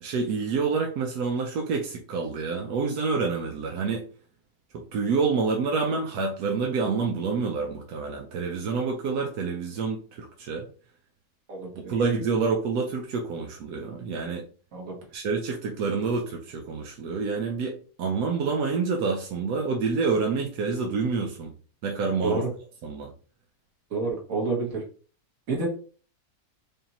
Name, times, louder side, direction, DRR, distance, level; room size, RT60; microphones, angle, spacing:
voice 1, 0.0-4.0 4.7-10.7 11.9-14.4 15.1-21.5 21.8-22.4 22.8-23.1, right 4 dB, 85° right, 1.2 m, -27 dB
voice 2, 11.5-11.9 14.7-15.0 22.2-22.5 23.9-24.8 25.5-25.7, right 3 dB, 65° right, 1.6 m, -28 dB
5.1 x 2.6 x 2.9 m
omnidirectional pair, 1.6 m